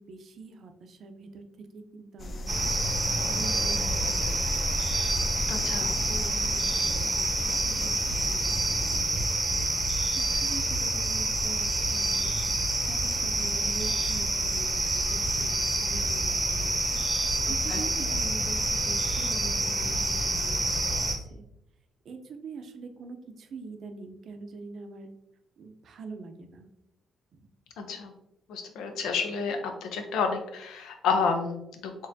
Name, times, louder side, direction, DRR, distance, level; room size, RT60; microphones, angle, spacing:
voice 1, 0.0-2.5 3.3-4.4 4.8-4.9 5.8-9.3 10.1-12.4 12.9-16.7 17.0-20.8 21.2-21.4 22.1-25.1 25.6-26.7 27.3-27.5, right 4 dB, 60° right, 6 dB, 0.5 m, -44 dB
sound 1, 2.2-9.0, equal, 40° left, 0.4 m, -39 dB
sound 2, 2.5-21.2, right 2 dB, 20° right, 1.0 m, -27 dB
voice 2, 5.5-5.9 17.7-17.8 27.8-28.1 28.5-32.1, left 5 dB, 85° left, 5 dB, 0.6 m, -30 dB
4.1 x 3.0 x 2.7 m, 0.83 s
cardioid pair, 90°, 0 cm